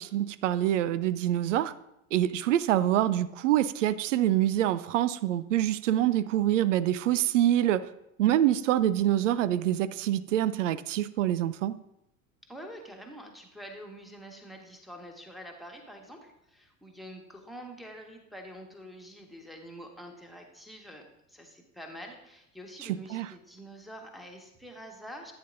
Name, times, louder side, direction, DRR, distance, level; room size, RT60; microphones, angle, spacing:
voice 1, 0.0-1.7 2.1-7.9 8.2-11.7 23.1-23.3, right 12 dB, 60° right, 17 dB, 0.6 m, -25 dB
voice 2, 12.5-25.3, equal, ahead, 1 dB, 1.5 m, -46 dB
14.5 x 8.9 x 2.6 m, 0.84 s
figure-of-eight pair, 75°, 43 cm